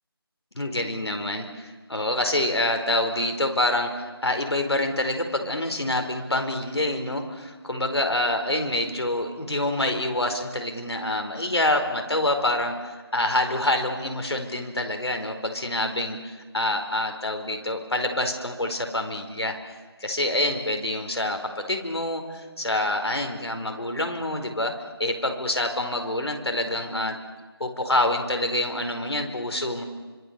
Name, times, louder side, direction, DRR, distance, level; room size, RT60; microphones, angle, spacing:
voice 1, 0.5-24.7 25.0-27.2 27.6-29.8, left 1 dB, 85° left, 5 dB, 4.6 m, -26 dB
26.5 x 25.5 x 6.9 m, 1.3 s
figure-of-eight pair, 175°, 13 cm